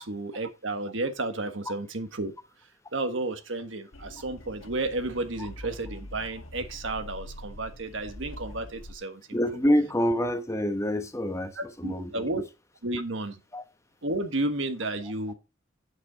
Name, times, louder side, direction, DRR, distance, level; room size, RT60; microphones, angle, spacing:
voice 1, 0.0-2.3 2.9-9.4 11.5-12.4 12.8-13.4 14.0-15.3, right 2 dB, 70° right, 1.5 m, -32 dB
sound 1, 3.9-8.9, left 1 dB, 90° left, 1.4 m, -44 dB
voice 2, 9.3-12.3 13.5-13.6, equal, 15° left, 1.0 m, -27 dB
8.5 x 7.5 x 4.0 m
head